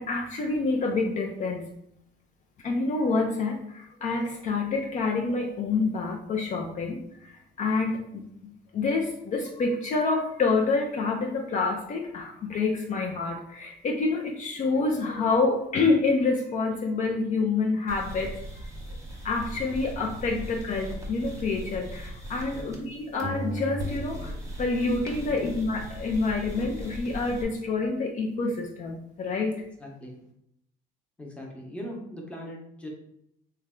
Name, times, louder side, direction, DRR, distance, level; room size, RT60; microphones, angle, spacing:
voice 1, 0.0-1.6 2.6-8.2 8.7-18.4 18.6-18.7 19.2-29.6, left 3 dB, 45° left, 1 dB, 0.5 m, -27 dB
sound 1, 17.9-22.9 23.2-27.4, equal, 20° right, 0.9 m, -37 dB
voice 2, 22.5-22.8 25.2-25.5 29.8-30.1 31.2-32.9, equal, 5° left, -1 dB, 0.8 m, -40 dB
3.2 x 2.2 x 3.6 m, 0.75 s
cardioid pair, 110°, 17 cm